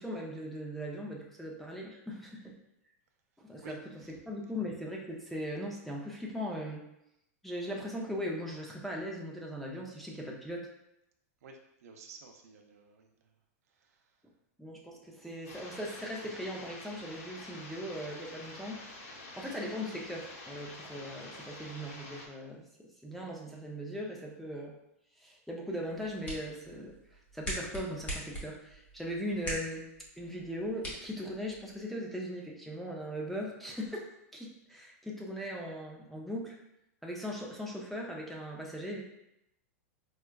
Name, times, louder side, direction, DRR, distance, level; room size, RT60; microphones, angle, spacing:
voice 1, 0.0-2.6 3.4-3.8 4.3-6.8 7.4-10.7 14.6-18.9 19.4-24.8 25.2-29.9 30.2-36.6 37.0-39.0, equal, ahead, -2 dB, 0.4 m, -39 dB
voice 2, 3.6-4.2 11.4-13.3 13.7-14.2, right 5 dB, 85° right, 3 dB, 0.6 m, -53 dB
sound 1, 15.5-22.3, left 2 dB, 70° left, 0.9 m, -47 dB
sound 2, 25.8-31.8, equal, 20° left, 0.8 m, -43 dB
4.4 x 2.3 x 2.2 m, 0.82 s
supercardioid pair, 150°, 8 cm